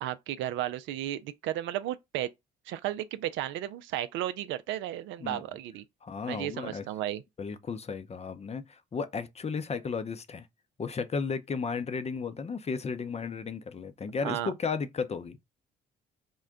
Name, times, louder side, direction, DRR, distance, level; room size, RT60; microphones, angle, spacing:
voice 1, 0.0-2.3 2.7-5.8 6.3-7.2 14.2-14.5, right 12 dB, 70° right, 0.5 m, -34 dB
voice 2, 6.0-6.9 7.4-10.5 10.8-15.4, left 5 dB, 30° left, 0.6 m, -34 dB
3.8 x 2.1 x 3.6 m
hypercardioid pair, 50°, 21 cm